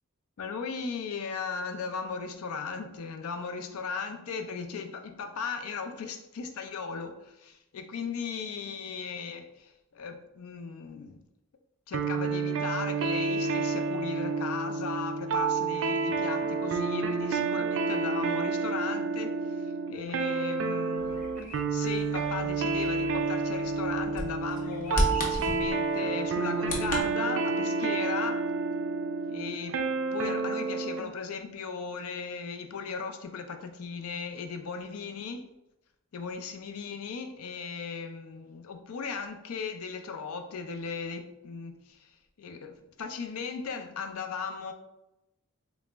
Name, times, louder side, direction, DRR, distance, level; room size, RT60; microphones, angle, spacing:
voice 1, 0.4-11.2 11.9-21.3 21.7-28.5 29.3-29.8 30.1-35.5 36.1-42.1 42.4-44.7, left 5 dB, 75° left, 6 dB, 0.4 m, -37 dB
sound 1, 11.9-31.1, right 4 dB, 60° right, 0.3 m, -29 dB
Bird vocalization bird call bird song, 21.0-27.0, left 1 dB, 35° left, 0.6 m, -35 dB
3.9 x 2.0 x 3.3 m, 0.90 s
head